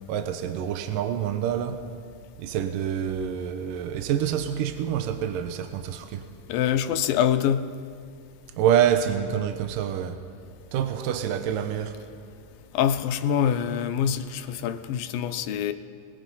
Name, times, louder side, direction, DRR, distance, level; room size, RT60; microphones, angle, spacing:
voice 1, 0.1-1.8 2.4-6.3 8.6-10.2 10.7-12.0, right 9 dB, 75° right, 8 dB, 2.6 m, -26 dB
voice 2, 6.5-7.7 12.7-15.7, left 9 dB, 85° left, 9 dB, 2.6 m, -25 dB
25.0 x 21.5 x 5.6 m, 2.4 s
omnidirectional pair, 4.0 m